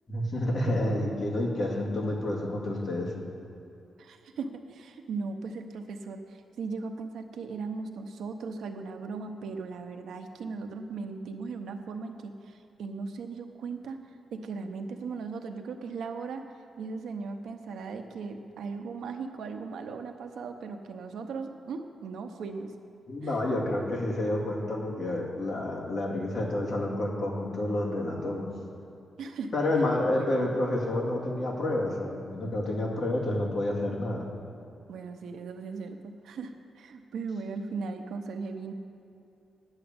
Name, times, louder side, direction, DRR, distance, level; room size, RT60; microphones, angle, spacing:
voice 1, 0.1-3.1 23.1-28.5 29.5-34.3, left 1 dB, 45° left, -2 dB, 2.2 m, -29 dB
voice 2, 4.0-14.0 14.3-16.4 16.8-22.7 23.2-23.4 29.2-29.5 30.2-30.7 34.9-38.7, right 4 dB, 85° right, 6 dB, 0.8 m, -38 dB
9.8 x 7.1 x 8.7 m, 2.7 s
wide cardioid pair, 160°, 0 cm